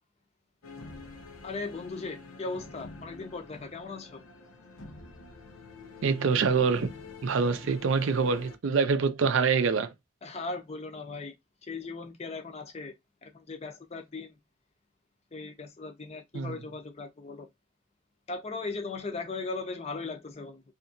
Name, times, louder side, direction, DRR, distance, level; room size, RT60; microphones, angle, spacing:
sound 1, 0.6-8.6, left 3 dB, 90° left, 0.6 m, -47 dB
voice 1, 1.4-4.2 10.2-11.3 11.6-12.9 13.2-14.3 15.3-17.5 18.3-20.6, left 3 dB, 30° left, 0.5 m, -38 dB
voice 2, 6.0-6.9 7.2-9.9 16.3-16.6, right 5 dB, 65° right, 0.4 m, -25 dB
2.7 x 2.5 x 2.5 m
head